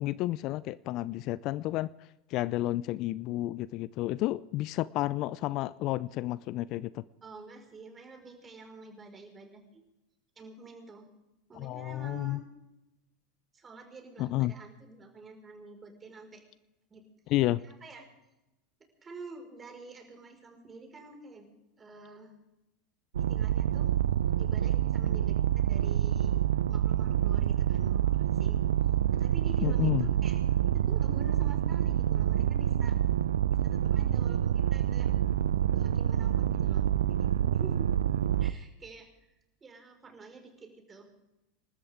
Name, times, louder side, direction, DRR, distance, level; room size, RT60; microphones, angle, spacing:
voice 1, 0.0-1.9 2.3-7.0 11.5-12.4 14.2-14.5 17.3-17.6 29.6-30.1, left 16 dB, 50° left, 19 dB, 0.5 m, -31 dB
voice 2, 7.2-9.8 10.4-11.1 11.5-12.5 13.5-16.4 16.9-17.0 17.6-18.1 19.0-21.5 21.8-22.3 23.2-23.9 24.4-26.3 26.7-28.7 29.1-30.4 30.7-32.9 33.5-35.1 35.6-37.3 37.5-37.9 38.4-39.3 39.6-41.1, right 3 dB, 25° right, 4 dB, 5.2 m, -48 dB
sound 1, 23.1-38.5, right 10 dB, 80° right, 0.5 m, -27 dB
27.5 x 13.0 x 3.7 m, 0.96 s
hypercardioid pair, 85°, 0 cm